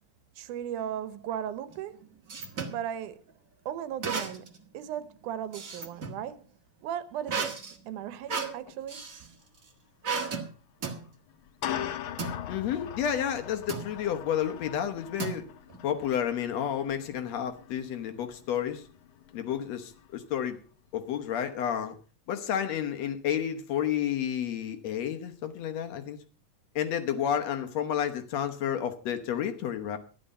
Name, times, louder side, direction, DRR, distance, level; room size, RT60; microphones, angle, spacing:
voice 1, 0.4-2.0 2.7-3.2 3.7-6.5 6.8-7.6 7.9-9.0, right 10 dB, 90° right, 2.4 m, -36 dB
sound 1, 1.7-2.8 4.0-4.6 5.0-6.2 7.3-9.3 10.0-10.5 10.8-11.0 12.2-12.4 13.7-13.9 15.2-15.8, right 5 dB, 40° right, 1.4 m, -34 dB
sound 2, 8.2-8.4 8.7-8.8 10.2-10.3 11.3-20.4, left 10 dB, 90° left, 1.1 m, -41 dB
voice 2, 12.5-15.5 15.8-18.9 19.3-20.6 20.9-21.9 22.3-26.2 26.8-30.0, left 9 dB, 65° left, 2.1 m, -31 dB
12.5 x 10.5 x 5.4 m
omnidirectional pair, 3.4 m